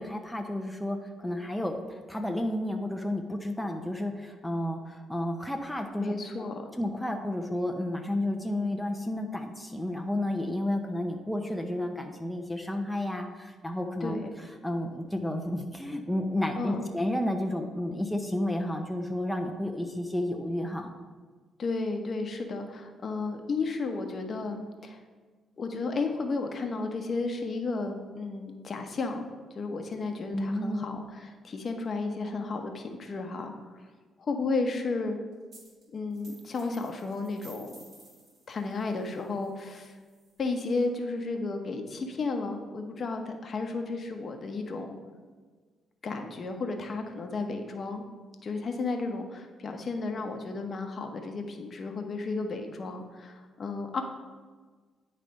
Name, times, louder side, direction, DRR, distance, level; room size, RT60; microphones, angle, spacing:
voice 1, 0.0-6.5 6.8-14.2 14.6-20.9 30.3-30.8, left 1 dB, 5° left, 3 dB, 0.6 m, -31 dB
voice 2, 6.0-6.7 14.0-14.3 16.6-16.8 21.6-25.0 25.6-29.2 29.6-33.5 34.2-35.2 35.9-37.8 38.5-39.9 40.4-44.9 46.0-48.0 48.4-54.0, left 3 dB, 45° left, 5 dB, 0.9 m, -33 dB
sound 1, 35.5-35.8 36.1-40.8, right 2 dB, 55° right, 2.1 m, -55 dB
9.8 x 3.3 x 5.2 m, 1.5 s
cardioid pair, 90°, 0 cm